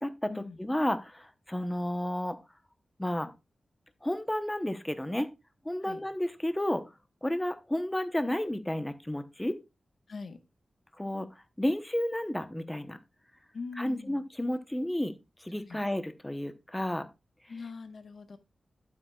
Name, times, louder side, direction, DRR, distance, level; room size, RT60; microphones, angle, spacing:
voice 1, 0.0-2.4 3.0-3.3 4.0-5.3 5.6-6.8 7.2-9.6 11.0-13.0 13.8-15.1 15.4-17.1, left 1 dB, 10° left, 10 dB, 0.9 m, -32 dB
voice 2, 10.1-10.4 13.5-14.3 15.7-15.8 17.5-18.4, left 4 dB, 65° left, 8 dB, 1.3 m, -41 dB
12.0 x 8.3 x 2.3 m, 0.25 s
wide cardioid pair, 90°, 0 cm